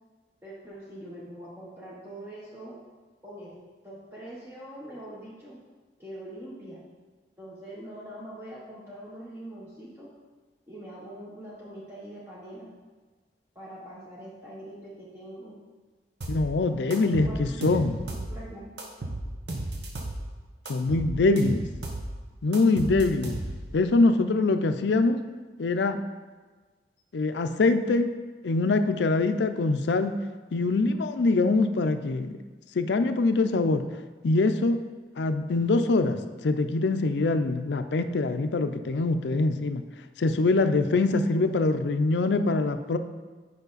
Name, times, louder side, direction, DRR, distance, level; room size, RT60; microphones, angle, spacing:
voice 1, 0.4-2.8 3.2-3.6 3.8-5.6 6.0-6.8 7.4-10.1 10.7-12.7 13.5-15.5 16.7-18.7, right 1 dB, 15° right, -8 dB, 1.0 m, -43 dB
sound 1, 16.2-16.5 16.9-18.3 18.8-20.2 20.7-22.1 22.5-23.7, right 1 dB, 75° right, 1.1 m, -34 dB
voice 2, 16.3-18.0 20.7-21.6 22.4-23.4 23.7-25.2 25.6-26.0 27.1-28.1 28.4-30.1 30.5-32.3 32.7-33.8 34.2-34.8 35.2-39.8 40.2-43.0, left 3 dB, 80° left, 9 dB, 0.5 m, -24 dB
8.1 x 5.2 x 4.0 m, 1.3 s
head